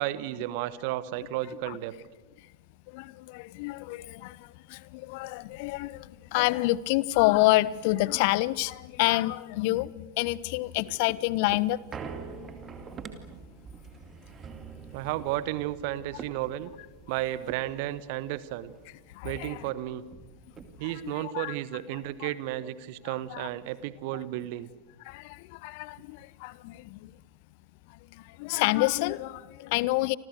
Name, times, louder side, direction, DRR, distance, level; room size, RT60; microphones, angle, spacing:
voice 1, 0.0-1.9 14.9-16.7 17.1-18.7 19.2-20.0 20.8-24.7, right 14 dB, 45° right, 1.2 m, -33 dB
voice 2, 2.9-11.8 19.1-19.6 21.0-21.5 22.2-22.3 23.3-23.5 25.1-27.1 28.4-30.2, left 19 dB, 45° left, 0.8 m, -28 dB
sound 1, 10.3-19.0 19.4-19.5 19.7-21.1 21.6-21.7, right 6 dB, 25° right, 2.5 m, -45 dB
30.0 x 26.0 x 6.6 m
figure-of-eight pair, 90°, 0 cm